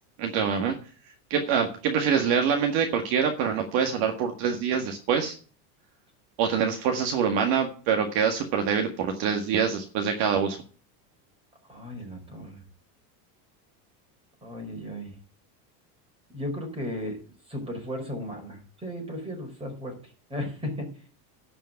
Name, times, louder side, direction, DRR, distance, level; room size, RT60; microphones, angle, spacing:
voice 1, 0.2-0.7 1.3-5.3 6.4-10.6, right 7 dB, 55° right, 4 dB, 1.9 m, -25 dB
voice 2, 11.7-12.6 14.4-15.1 16.3-17.2 17.5-20.0 20.3-20.9, left 1 dB, 10° right, 1 dB, 4.6 m, -35 dB
11.5 x 5.6 x 8.9 m, 0.40 s
supercardioid pair, 145°, 45 cm